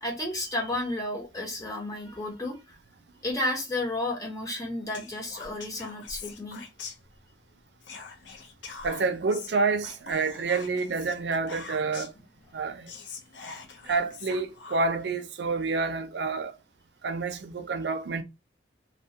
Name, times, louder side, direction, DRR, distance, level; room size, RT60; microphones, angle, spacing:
voice 1, 0.0-2.8 3.2-6.6, left 1 dB, 20° left, 0.8 m, -32 dB
Whispering, 4.9-7.4 7.8-12.2 12.6-12.7 12.9-15.1, left 5 dB, 80° left, 0.5 m, -44 dB
voice 2, 8.8-12.1 12.5-12.9 13.9-16.5 17.0-18.2, right 4 dB, 65° right, 0.4 m, -28 dB
2.2 x 2.1 x 2.7 m
head